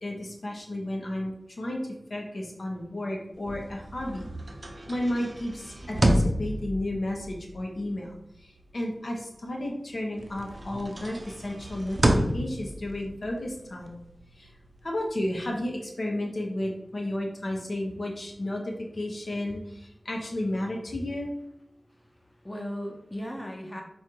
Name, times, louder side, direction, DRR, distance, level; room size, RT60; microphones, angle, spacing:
voice 1, 0.0-1.8 2.1-4.3 4.9-8.1 8.4-11.2 11.4-13.9 14.4-14.5 14.8-21.3, left 1 dB, 65° left, 0 dB, 1.0 m, -32 dB
sound 1, 3.4-9.8 10.2-15.6, right 1 dB, 45° right, 0.6 m, -31 dB
voice 2, 21.9-23.8, equal, 20° left, 1 dB, 0.8 m, -37 dB
4.5 x 2.4 x 4.6 m, 0.79 s
wide cardioid pair, 50°, 0 cm